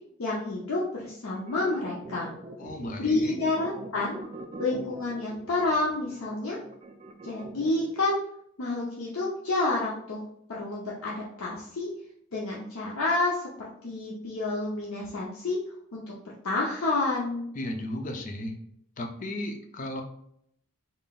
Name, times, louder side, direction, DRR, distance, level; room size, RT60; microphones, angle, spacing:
voice 1, 0.2-2.3 3.0-4.2 4.6-6.6 7.2-8.2 8.6-11.9 12.3-15.6 15.9-17.5, left 2 dB, 80° left, -4 dB, 0.7 m, -29 dB
sound 1, 1.3-8.1, right 2 dB, 30° right, 0.3 m, -43 dB
voice 2, 2.6-3.4 17.5-18.6 19.0-20.0, left 1 dB, 35° left, 4 dB, 0.5 m, -35 dB
3.8 x 3.8 x 2.3 m, 0.72 s
head